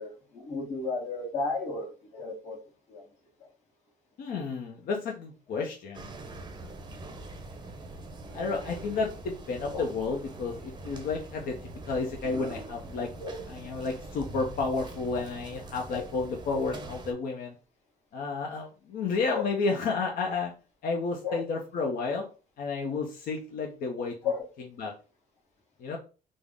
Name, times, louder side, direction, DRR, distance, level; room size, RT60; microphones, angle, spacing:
voice 1, 0.0-2.6 2.9-3.0 3.4-3.5 9.7-9.9 13.2-13.4 15.9-16.0 19.3-19.5 21.2-21.4 24.2-24.5, left 4 dB, 40° left, -4 dB, 1.2 m, -33 dB
voice 2, 4.2-6.1 8.3-11.6 11.8-13.1 13.5-17.6 18.1-20.5 20.8-22.2 22.6-24.2 24.8-24.9 25.8-26.0, left 4 dB, 60° left, 0 dB, 0.6 m, -31 dB
sound 1, 5.9-17.1, right 2 dB, 25° right, 0.6 m, -43 dB
3.5 x 2.0 x 3.4 m, 0.34 s
cardioid pair, 110°, 17 cm